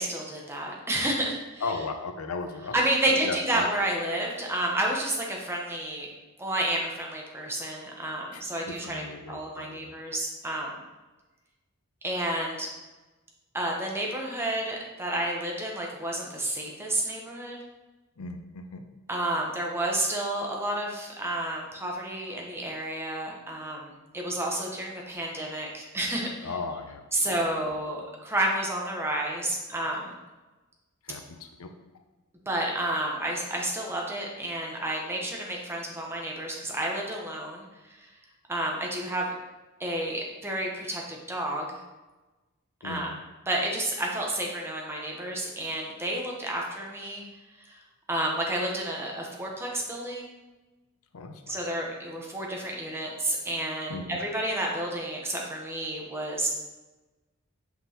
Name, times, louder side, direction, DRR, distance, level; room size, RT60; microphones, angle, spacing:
voice 1, 0.0-1.6 2.7-6.1 6.4-10.8 12.0-12.7 13.5-17.6 19.1-26.5 27.1-30.2 32.5-38.1 38.5-39.3 39.8-41.8 42.8-43.1 43.5-47.2 47.6-47.8 48.1-50.3 51.5-56.5, right 1 dB, 10° right, -1 dB, 0.9 m, -30 dB
voice 2, 1.6-2.7 3.1-3.6 8.3-9.9 18.2-18.8 26.4-27.7 31.0-31.7 42.8-43.2 51.1-51.6 53.9-54.2, left 4 dB, 70° left, 6 dB, 0.6 m, -37 dB
6.0 x 5.6 x 2.9 m, 1.1 s
head